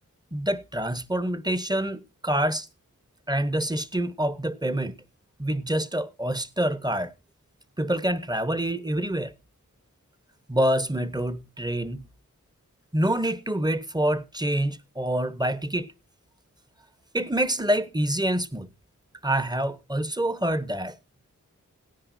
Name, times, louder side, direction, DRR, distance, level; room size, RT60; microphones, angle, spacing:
voice 1, 0.3-2.7 3.3-5.0 5.4-7.1 7.8-9.3 10.5-12.0 12.9-15.9 17.1-18.7 19.2-21.0, right 1 dB, 10° right, 1.0 m, -26 dB
17.5 x 10.5 x 2.6 m
cardioid pair, 40°, 33 cm